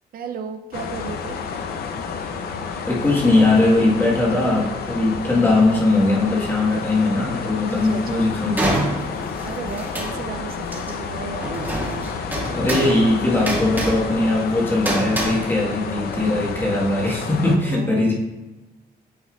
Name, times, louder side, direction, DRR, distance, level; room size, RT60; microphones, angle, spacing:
voice 1, 0.1-1.4 7.7-8.3 9.4-11.6 17.6-18.1, right 5 dB, 65° right, 6 dB, 0.5 m, -34 dB
sound 1, 0.7-17.6, left 5 dB, 75° left, 0.6 m, -30 dB
voice 2, 2.9-8.9 12.5-18.1, left 2 dB, 15° left, -4 dB, 1.5 m, -20 dB
Metal and Glass Foley, 7.7-7.9 8.6-10.5 10.7-11.0 11.4-15.3, right 1 dB, 10° right, 1.5 m, -27 dB
9.1 x 4.3 x 2.4 m, 1.1 s
cardioid pair, 110°, 16 cm